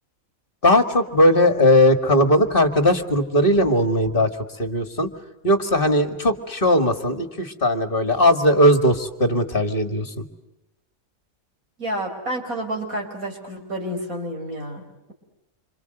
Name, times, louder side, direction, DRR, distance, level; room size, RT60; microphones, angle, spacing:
voice 1, 0.6-4.3 4.6-5.1 5.4-10.2, left 1 dB, 40° left, 8 dB, 2.2 m, -18 dB
voice 2, 11.8-15.1, right 1 dB, 90° right, 3 dB, 5.7 m, -30 dB
27.5 x 27.0 x 7.9 m, 0.94 s
omnidirectional pair, 1.4 m